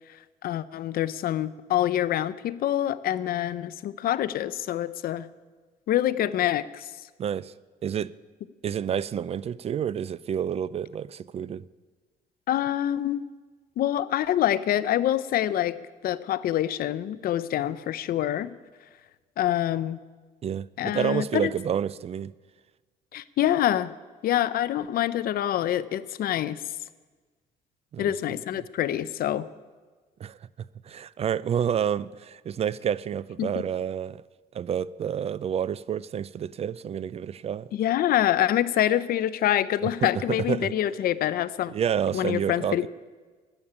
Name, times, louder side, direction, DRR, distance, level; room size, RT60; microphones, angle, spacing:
voice 1, 0.4-5.3 5.9-6.9 12.5-13.2 13.8-15.8 16.0-18.5 19.4-20.0 20.8-21.5 23.1-23.9 24.2-26.6 28.0-29.5 33.4-33.6 37.7-41.7 42.1-42.9, left 12 dB, 60° left, 0.6 m, -26 dB
voice 2, 7.2-7.5 7.8-8.1 8.6-11.6 20.4-22.3 27.9-28.4 30.2-30.4 30.8-34.2 34.5-37.7 39.8-40.7 41.7-42.9, right 8 dB, 40° right, 0.4 m, -29 dB
12.5 x 8.9 x 9.8 m
cardioid pair, 110°, 17 cm